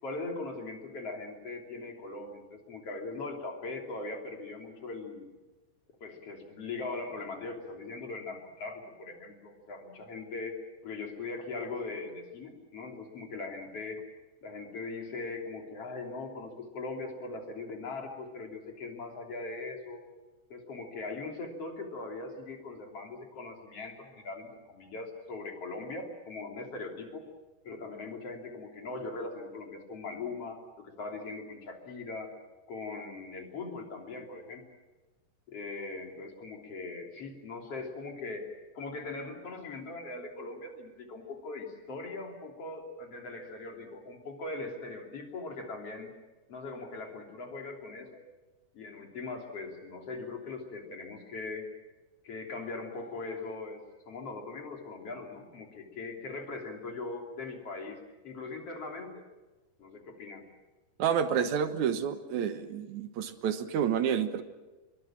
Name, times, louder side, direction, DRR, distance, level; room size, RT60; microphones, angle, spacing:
voice 1, 0.0-5.4 6.0-10.6 10.8-14.0 14.4-20.0 20.5-27.2 27.6-30.6 31.0-32.3 32.7-34.6 35.5-38.5 38.7-46.1 46.5-48.2 48.7-51.7 52.2-53.8 54.1-58.0 58.2-59.2 59.8-60.4, left 3 dB, 35° left, 2 dB, 3.7 m, -40 dB
voice 2, 61.0-64.4, right 8 dB, 70° right, 9 dB, 1.8 m, -29 dB
25.0 x 23.0 x 7.5 m, 1.2 s
omnidirectional pair, 5.1 m